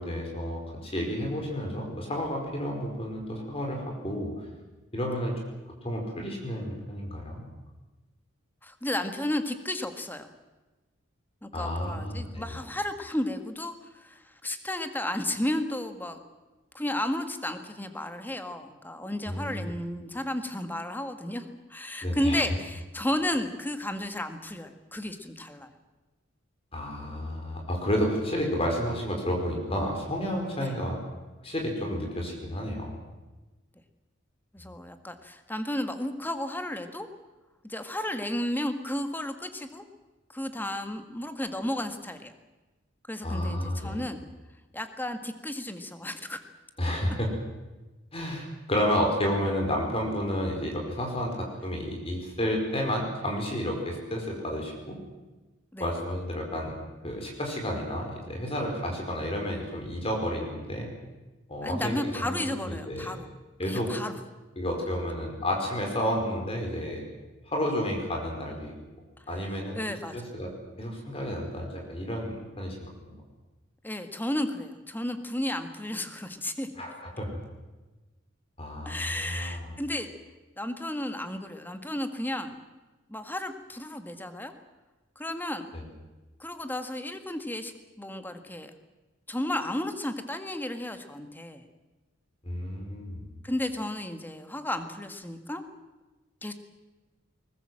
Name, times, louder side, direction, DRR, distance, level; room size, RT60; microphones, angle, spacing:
voice 1, 0.0-4.3 4.9-5.3 5.8-7.4 11.5-12.6 19.3-19.7 22.0-22.4 26.7-31.0 31.4-32.9 43.2-44.0 46.8-47.3 48.1-55.0 55.8-56.8 57.0-60.9 61.5-63.2 63.6-63.9 64.6-67.0 67.5-68.7 69.3-69.8 70.1-70.5 70.8-72.8 73.0-73.1 76.8-77.4 78.6-79.7 85.7-85.8 92.4-93.3, equal, 30° left, 1 dB, 4.7 m, -31 dB
voice 2, 8.6-10.3 11.4-16.2 16.7-25.7 30.6-30.7 34.5-37.1 37.6-39.8 40.3-42.3 43.1-44.2 44.7-46.4 55.7-55.9 61.6-63.3 63.7-64.1 69.7-70.3 73.8-76.7 78.9-80.1 80.6-82.5 83.1-84.5 85.2-85.7 86.4-88.7 89.3-91.6 93.4-95.6 96.4-96.5, left 1 dB, 10° left, 8 dB, 1.8 m, -33 dB
22.5 x 20.0 x 7.8 m, 1.1 s
head